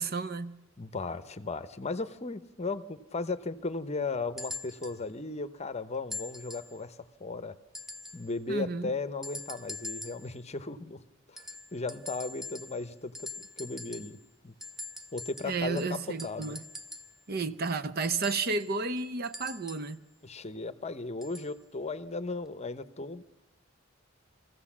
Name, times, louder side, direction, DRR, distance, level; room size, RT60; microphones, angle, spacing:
voice 1, 0.0-0.6 8.5-8.9 15.4-16.6 17.3-20.0, right 4 dB, 50° right, 0.8 m, -32 dB
voice 2, 0.8-7.5 8.1-11.0 11.3-11.4 11.7-13.3 13.6-14.2 14.4-14.5 15.1-16.6 20.2-23.2, left 3 dB, 35° left, 0.8 m, -36 dB
sound 1, 4.4-5.0 6.1-6.8 7.7-8.3 9.2-10.3 11.4-12.9 13.1-14.2 14.6-17.2 18.2-20.0 21.2-21.5 22.5-22.6, left 2 dB, ahead, 0.7 m, -43 dB
23.5 x 15.5 x 7.3 m
head